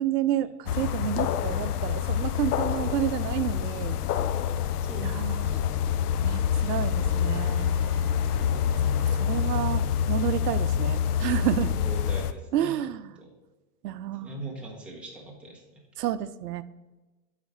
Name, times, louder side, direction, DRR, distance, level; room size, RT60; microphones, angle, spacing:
voice 1, 0.0-4.0 5.0-5.5 6.2-7.7 9.0-11.8 12.5-13.2 13.8-14.4 16.0-16.6, right 11 dB, 85° right, 15 dB, 0.6 m, -30 dB
sound 1, 0.7-12.3, left 8 dB, 75° left, 0.6 m, -26 dB
voice 2, 4.8-5.6 11.7-12.8 13.2-13.3 14.2-15.6, right 1 dB, ahead, -3 dB, 1.1 m, -41 dB
Bowed string instrument, 6.8-11.3, right 4 dB, 20° right, 0.6 m, -49 dB
8.2 x 4.1 x 4.7 m, 1.1 s
hypercardioid pair, 130°, 46 cm